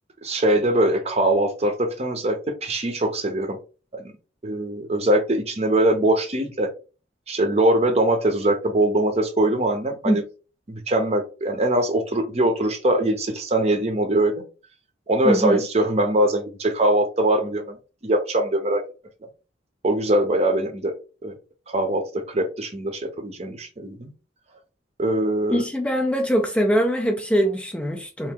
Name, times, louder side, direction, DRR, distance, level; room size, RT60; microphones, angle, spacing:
voice 1, 0.2-3.6 3.9-4.0 4.4-6.7 7.3-10.2 10.7-14.3 15.1-17.8 18.0-18.8 19.8-20.9 21.2-21.3 21.7-24.1 25.0-25.6, right 1 dB, 35° right, 6 dB, 0.7 m, -22 dB
voice 2, 15.2-15.6 25.5-28.3, equal, 5° left, 3 dB, 0.4 m, -22 dB
2.9 x 2.6 x 3.6 m, 0.34 s
head